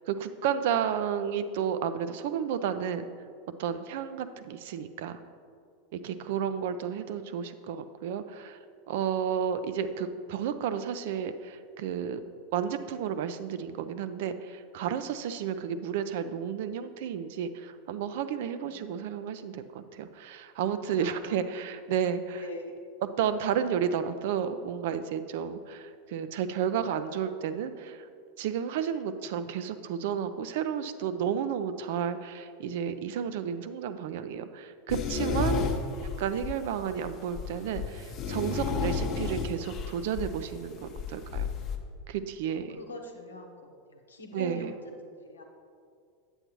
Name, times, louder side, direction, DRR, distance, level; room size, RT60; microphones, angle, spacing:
voice 1, 0.1-3.0 3.6-5.2 5.9-8.6 8.9-12.2 12.5-22.4 23.2-28.1 28.4-35.7 36.2-41.4 42.1-42.8 44.3-44.7, right 8 dB, 60° right, 11 dB, 0.4 m, -32 dB
voice 2, 18.6-19.4 20.8-21.3 22.3-22.7 42.5-44.7 45.0-45.4, equal, 80° left, 3 dB, 0.9 m, -44 dB
sound 1, 34.9-41.8, left 5 dB, 40° left, 0.7 m, -32 dB
8.7 x 8.0 x 3.0 m, 2.3 s
figure-of-eight pair, 85°, 0 cm